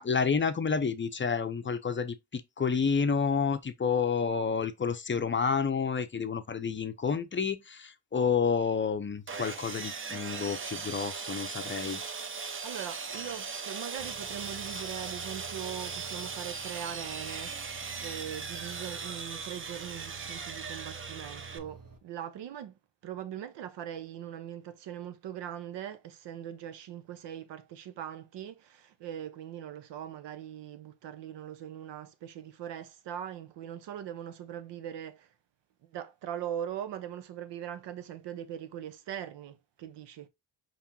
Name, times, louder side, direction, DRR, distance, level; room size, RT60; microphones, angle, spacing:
voice 1, 0.0-12.0, left 5 dB, 30° left, 0.5 m, -29 dB
Sawing, 9.3-21.6, right 5 dB, 30° right, 0.6 m, -39 dB
voice 2, 12.6-17.6 18.0-35.3 35.8-40.3, right 10 dB, 90° right, 0.7 m, -41 dB
sound 1, 14.0-22.0, right 6 dB, 50° right, 1.3 m, -50 dB
4.8 x 3.6 x 2.8 m
cardioid pair, 60°, 42 cm